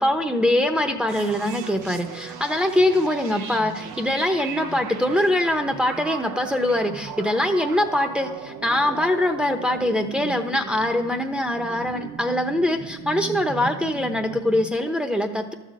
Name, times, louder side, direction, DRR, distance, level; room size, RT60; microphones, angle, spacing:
voice 1, 0.0-15.5, left 1 dB, 5° right, 4 dB, 0.9 m, -23 dB
sound 1, 1.1-14.7, right 6 dB, 75° right, 1.0 m, -38 dB
12.5 x 4.2 x 7.5 m, 1.2 s
cardioid pair, 90°, 30 cm